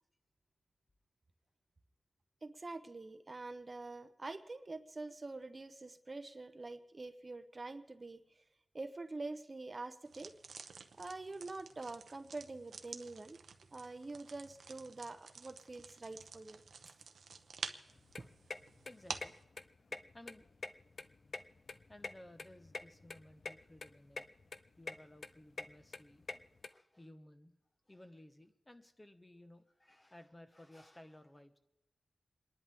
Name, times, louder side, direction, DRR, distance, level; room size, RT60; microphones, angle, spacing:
voice 1, 2.4-8.2 8.7-10.3 11.0-13.4 13.7-16.9 18.2-18.3, right 3 dB, 35° right, 9 dB, 0.9 m, -46 dB
sound 1, 10.1-19.4, right 5 dB, 85° right, 0.9 m, -50 dB
sound 2, 17.9-26.7, left 3 dB, 55° left, 0.6 m, -47 dB
voice 2, 18.8-19.4 20.1-20.5 21.9-24.3 24.8-26.2 26.7-27.5 27.9-31.6, left 1 dB, 20° left, 8 dB, 1.2 m, -57 dB
29.0 x 11.0 x 3.6 m, 0.90 s
wide cardioid pair, 90°, 0 cm